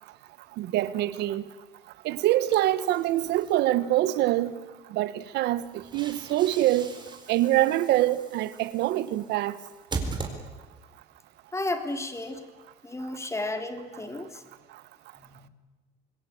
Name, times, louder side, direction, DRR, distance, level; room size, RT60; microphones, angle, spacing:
voice 1, 0.6-1.4 2.0-4.5 4.9-6.9 7.3-9.5, right 14 dB, 85° right, 1.3 m, -25 dB
sound 1, 2.5-3.6 5.5-10.9, right 3 dB, 25° right, 4.3 m, -40 dB
voice 2, 11.5-12.4 12.8-14.4 15.2-15.5, left 2 dB, 15° left, 3.4 m, -33 dB
26.0 x 20.5 x 8.7 m
cardioid pair, 110°, 17 cm